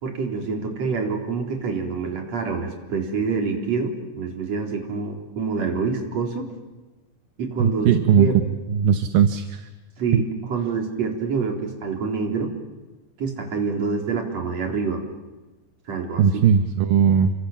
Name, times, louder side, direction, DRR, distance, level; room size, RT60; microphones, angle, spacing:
voice 1, 0.0-6.5 7.4-8.4 10.0-12.5 13.2-15.0 15.9-16.2, right 5 dB, 45° right, 3 dB, 4.9 m, -26 dB
voice 2, 7.6-8.3 8.7-9.6 10.1-10.2 16.2-17.3, right 7 dB, 75° right, 9 dB, 2.7 m, -18 dB
29.5 x 25.5 x 7.4 m, 1.1 s
omnidirectional pair, 4.3 m